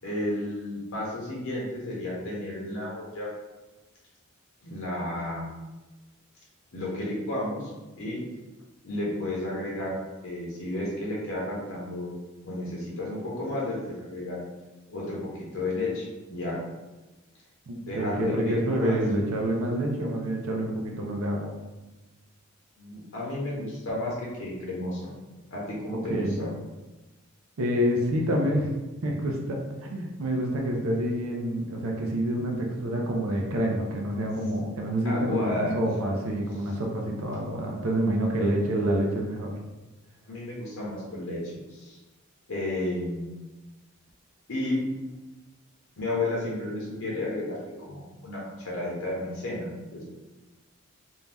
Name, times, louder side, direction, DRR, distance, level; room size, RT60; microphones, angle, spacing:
voice 1, 0.0-3.3 4.6-5.6 6.7-7.7 8.0-8.2 8.8-9.9 10.2-12.2 12.4-14.4 14.9-16.6 17.9-19.0 22.8-25.1 25.5-26.5 35.0-35.7 40.3-42.0 42.5-43.3 44.5-44.8 46.0-50.0, left 1 dB, 65° left, -4 dB, 0.7 m, -32 dB
voice 2, 17.7-21.5 25.9-26.4 27.6-28.7 29.0-39.5, right 1 dB, 70° right, -1 dB, 0.5 m, -27 dB
2.6 x 2.2 x 3.3 m, 1.1 s
head